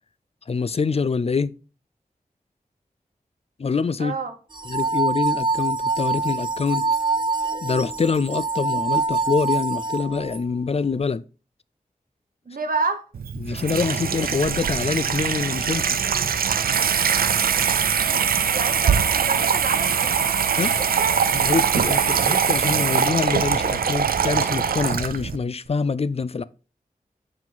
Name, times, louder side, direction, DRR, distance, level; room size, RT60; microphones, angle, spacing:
voice 1, 0.5-1.5 3.6-4.2 4.7-6.9 7.6-11.2 13.4-16.0 20.6-20.7 21.3-26.4, left 5 dB, 45° left, 0.4 m, -25 dB
voice 2, 4.0-4.3 12.5-13.0 18.5-21.1, right 4 dB, 75° right, 1.1 m, -29 dB
sound 1, 4.5-10.4, right 3 dB, 30° right, 0.6 m, -25 dB
Water tap faucet / Sink (filling or washing), 13.1-25.4, right 7 dB, 90° right, 0.4 m, -22 dB
5.7 x 4.8 x 3.8 m
cardioid pair, 40°, 15 cm